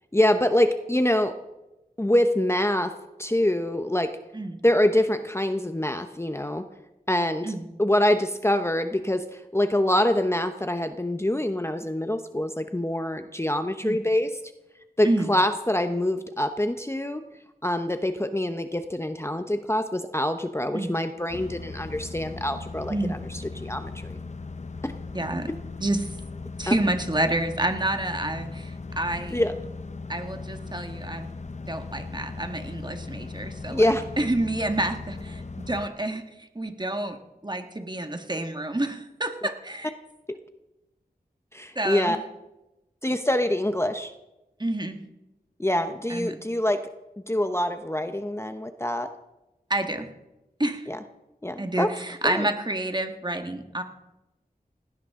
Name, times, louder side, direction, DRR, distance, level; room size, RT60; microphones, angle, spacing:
voice 1, 0.1-1.4 2.0-2.9 3.2-4.1 4.6-6.6 7.1-14.3 15.0-17.2 17.6-24.2 24.8-24.9 26.7-26.8 29.3-29.5 33.7-34.0 40.3-40.4 41.5-42.2 43.0-44.1 45.6-46.8 47.3-49.1 50.9-51.0 51.4-51.9 52.2-52.5, left 1 dB, 15° left, 8 dB, 0.9 m, -25 dB
sound 1, 21.3-35.9, left 3 dB, 50° left, 0.9 m, -38 dB
voice 2, 25.1-25.5 25.8-26.1 26.6-29.4 30.1-31.3 31.7-33.9 34.2-36.2 36.5-37.2 37.4-39.9 41.7-42.2 44.6-45.0 46.1-46.4 49.7-50.1 50.6-50.9 51.6-53.8, right 1 dB, 30° right, 6 dB, 1.7 m, -28 dB
18.5 x 17.0 x 3.8 m, 0.98 s
wide cardioid pair, 60°, 16 cm